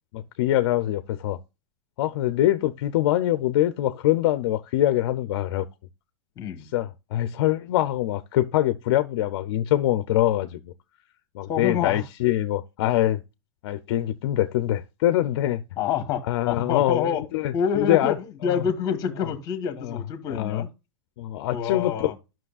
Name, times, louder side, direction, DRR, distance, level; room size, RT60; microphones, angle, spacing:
voice 1, 0.1-1.4 2.0-5.7 6.7-10.7 11.3-13.2 13.6-15.6 16.3-18.1 18.4-18.6 19.8-20.0 20.3-20.6 21.2-22.1, left 13 dB, 50° left, 0.6 m, -24 dB
voice 2, 6.4-6.7 11.5-12.1 15.8-17.2 17.5-20.7 21.5-22.2, left 8 dB, 20° left, 1.3 m, -27 dB
12.5 x 6.0 x 2.4 m
supercardioid pair, 170°, 16 cm